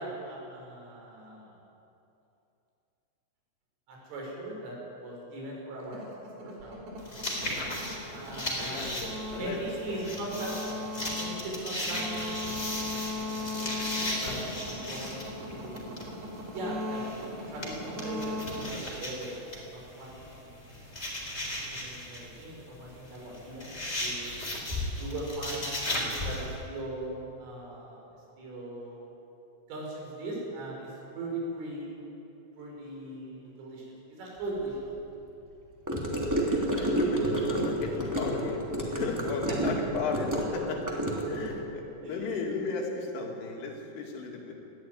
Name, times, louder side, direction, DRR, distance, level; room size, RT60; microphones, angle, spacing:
voice 1, 0.0-1.5 3.9-7.6 8.1-8.9 9.4-10.5 11.0-13.1 13.3-16.0 16.5-17.0 17.5-20.6 21.7-23.7 24.0-24.4 25.0-25.7 26.0-28.1 28.4-29.2 29.7-32.0 32.6-34.8 39.5-39.7 42.0-42.3, right 1 dB, 75° right, -2 dB, 7.8 m, -40 dB
sound 1, 5.8-19.7, left 2 dB, 55° right, 5.1 m, -38 dB
sound 2, 7.0-26.5, left 1 dB, 15° left, 3.6 m, -36 dB
voice 2, 8.6-9.6 9.9-10.2 10.6-10.8 36.1-38.6 38.9-44.5, left 4 dB, 80° left, 0 dB, 4.9 m, -36 dB
Gurgling / Car passing by / Sink (filling or washing), 35.9-41.5, right 1 dB, 5° right, 1.4 m, -29 dB
19.5 x 14.5 x 9.6 m, 2.8 s
omnidirectional pair, 5.7 m